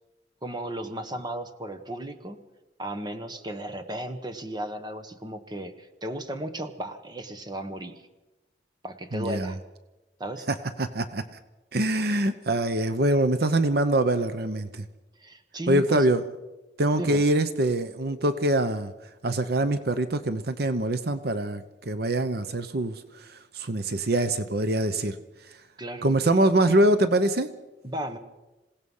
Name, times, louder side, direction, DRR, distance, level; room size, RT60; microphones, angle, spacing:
voice 1, 0.4-2.4 2.8-8.1 8.8-9.6 10.2-10.5 15.2-16.1 16.9-17.2 25.8-26.1 27.8-28.2, right 1 dB, 25° right, 9 dB, 1.3 m, -35 dB
voice 2, 9.1-9.5 10.8-11.4 11.7-14.8 15.7-16.2 16.8-18.9 19.2-25.1 26.0-27.5, right 1 dB, 60° right, 11 dB, 0.9 m, -24 dB
27.0 x 17.0 x 5.6 m, 1.1 s
head